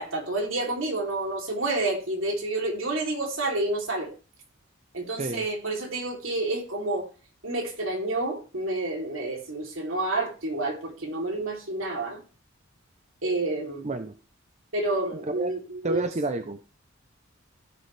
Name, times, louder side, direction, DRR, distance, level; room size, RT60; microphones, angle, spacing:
voice 1, 0.0-4.1 4.9-7.1 7.4-12.2 13.2-13.8 14.7-16.1, right 2 dB, 70° right, 3.1 m, -29 dB
voice 2, 13.8-14.1 15.3-15.5 15.8-16.6, right 2 dB, 35° right, 0.7 m, -29 dB
16.0 x 7.0 x 3.3 m
head